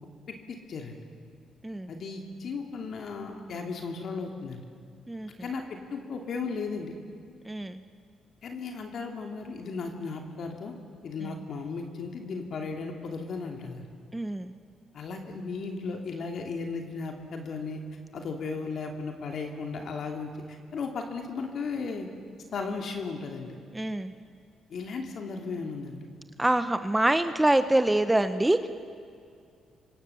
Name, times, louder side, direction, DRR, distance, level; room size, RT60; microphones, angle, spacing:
voice 1, 0.3-1.0 1.9-4.6 5.4-6.9 8.4-10.7 11.0-13.9 14.9-17.8 18.1-22.1 22.5-23.6 24.7-26.1, left 4 dB, 60° left, 3 dB, 2.9 m, -35 dB
voice 2, 7.4-7.8 11.2-11.3 14.1-14.5 23.7-24.1 26.4-28.7, right 1 dB, 10° right, 10 dB, 1.0 m, -25 dB
29.0 x 24.5 x 7.2 m, 2.3 s
cardioid pair, 90°, 0 cm